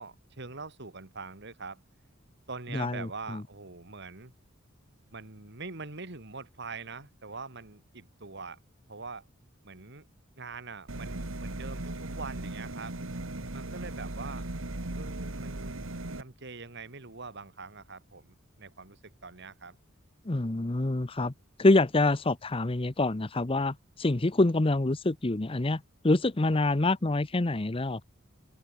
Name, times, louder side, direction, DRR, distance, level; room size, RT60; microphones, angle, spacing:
voice 1, 0.0-1.8 2.5-4.3 5.1-8.6 8.9-9.3 9.6-10.1 10.4-13.0 13.5-14.5 14.9-15.8 16.2-19.8, right 4 dB, 60° right, 2.5 m, -43 dB
voice 2, 2.7-3.1 20.3-21.3 21.6-28.0, left 2 dB, 25° left, 0.8 m, -26 dB
sound 1, 10.9-16.2, right 2 dB, 80° right, 2.0 m, -37 dB
open air
head